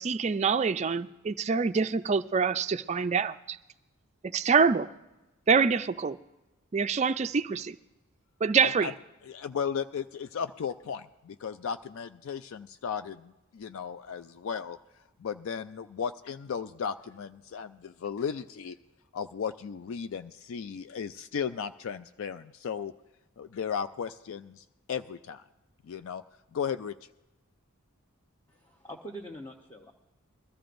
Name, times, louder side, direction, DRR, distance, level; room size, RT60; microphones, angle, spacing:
voice 1, 0.0-3.6 4.3-4.9 5.5-6.2 6.7-7.8 8.4-8.9, right 5 dB, 30° right, 0.3 m, -25 dB
voice 2, 8.6-8.9 9.2-14.8 15.2-18.8 19.1-22.9 23.4-25.4 25.9-26.2 26.5-26.9, left 7 dB, 65° left, 0.3 m, -35 dB
voice 3, 28.5-29.9, right 1 dB, 15° left, 0.8 m, -44 dB
22.0 x 14.0 x 2.6 m
head